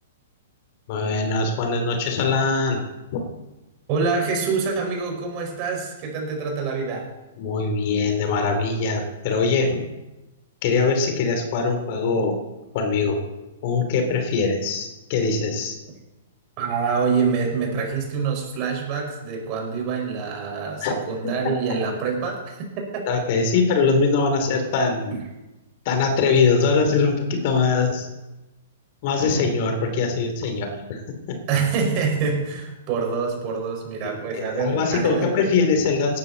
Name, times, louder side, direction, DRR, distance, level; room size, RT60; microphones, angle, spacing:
voice 1, 0.9-2.8 3.1-3.2 7.4-9.8 10.6-12.4 12.7-13.2 13.6-15.7 20.8-21.0 23.1-25.1 25.8-28.1 29.0-31.3 34.0-36.2, left 4 dB, 50° left, 5 dB, 3.3 m, -22 dB
voice 2, 3.9-7.1 16.6-22.6 25.1-25.2 31.5-35.5, right 5 dB, 40° right, 1 dB, 5.2 m, -26 dB
18.0 x 12.0 x 4.2 m, 1.0 s
hypercardioid pair, 115°, 0 cm